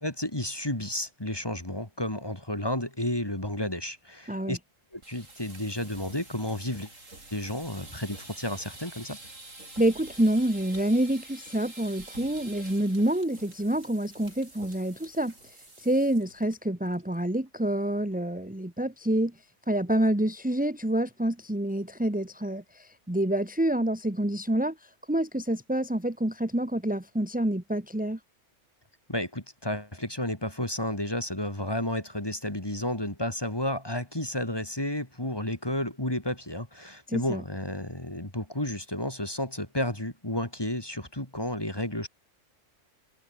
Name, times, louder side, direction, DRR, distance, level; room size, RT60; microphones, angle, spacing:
voice 1, 0.0-4.6 4.9-6.9 7.3-9.2 29.1-42.1, left 1 dB, 20° left, 3.1 m, -32 dB
sound 1, 4.9-16.6 16.9-17.2 17.5-17.6 17.9-18.3, right 2 dB, 85° right, 6.3 m, -48 dB
voice 2, 9.8-19.3 19.7-28.2 37.1-37.4, right 1 dB, 5° right, 1.8 m, -27 dB
omnidirectional pair, 1.3 m